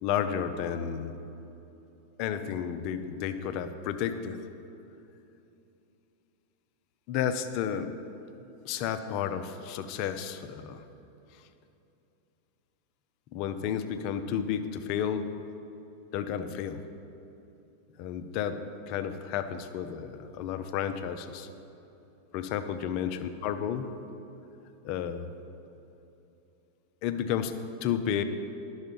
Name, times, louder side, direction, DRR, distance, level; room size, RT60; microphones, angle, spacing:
voice 1, 0.0-1.2 2.2-4.4 7.1-7.9 8.6-10.8 13.3-15.3 16.1-16.8 18.0-18.6 18.9-21.5 22.3-24.0 24.8-25.3 27.0-28.2, left 8 dB, 45° left, 9 dB, 0.6 m, -32 dB
12.0 x 6.3 x 5.2 m, 2.9 s
figure-of-eight pair, 90°, 0 cm